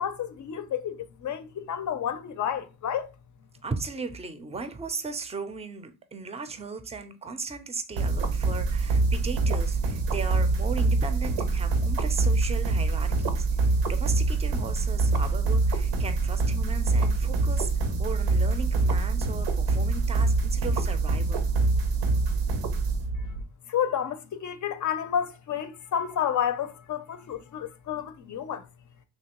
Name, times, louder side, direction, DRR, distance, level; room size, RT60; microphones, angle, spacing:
voice 1, 0.0-3.1 23.7-28.7, left 9 dB, 45° left, 0.5 m, -30 dB
voice 2, 3.6-21.5, right 4 dB, 15° right, 0.5 m, -37 dB
sound 1, 8.0-23.4, right 3 dB, 85° right, 0.7 m, -25 dB
3.2 x 2.7 x 2.9 m
cardioid pair, 70°, 40 cm